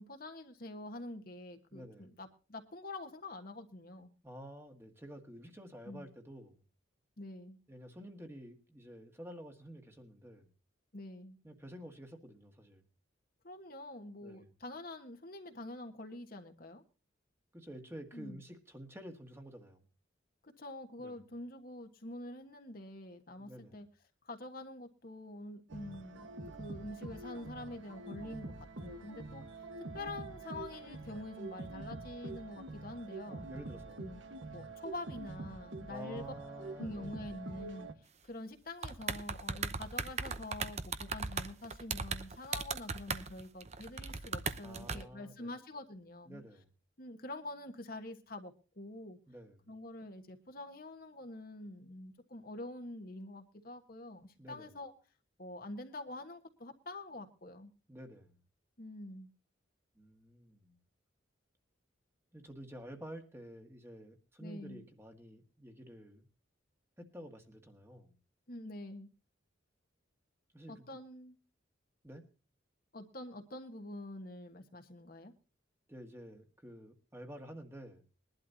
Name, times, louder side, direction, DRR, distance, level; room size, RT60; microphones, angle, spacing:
voice 1, 0.0-4.1 5.9-6.1 7.2-7.6 10.9-11.4 13.4-16.8 18.1-18.4 20.4-23.9 24.2-29.4 29.9-33.5 34.0-34.2 34.5-36.3 36.8-37.9 38.3-46.4 47.0-49.2 49.7-54.9 55.4-57.7 58.8-59.3 64.4-64.8 68.5-69.1 70.7-71.4 72.9-75.3, left 1 dB, 50° left, 5 dB, 1.4 m, -46 dB
voice 2, 1.7-2.1 4.2-6.6 7.7-10.5 11.4-12.8 14.2-14.5 17.5-19.8 21.0-21.2 23.4-23.8 33.3-34.0 35.9-37.2 44.6-45.5 46.3-46.7 49.3-49.6 54.4-54.7 57.9-58.4 59.9-60.8 62.3-66.3 67.0-68.2 70.5-70.8 72.0-72.2 75.9-78.1, equal, 10° right, 5 dB, 1.7 m, -50 dB
sound 1, 25.7-37.9, right 2 dB, 80° right, 1.4 m, -46 dB
sound 2, 38.8-45.0, right 5 dB, 35° right, 0.8 m, -37 dB
21.5 x 11.5 x 2.8 m, 0.34 s
head